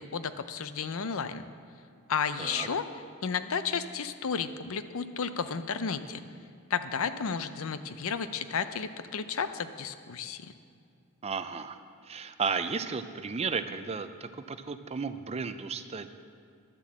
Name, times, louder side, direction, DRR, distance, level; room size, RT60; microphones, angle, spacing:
voice 1, 0.0-1.4 2.1-2.8 3.2-6.2 6.7-10.5, left 6 dB, 65° left, 11 dB, 0.6 m, -32 dB
voice 2, 11.2-11.8 12.0-16.1, right 5 dB, 30° right, 10 dB, 0.5 m, -34 dB
11.5 x 7.7 x 7.4 m, 2.3 s
head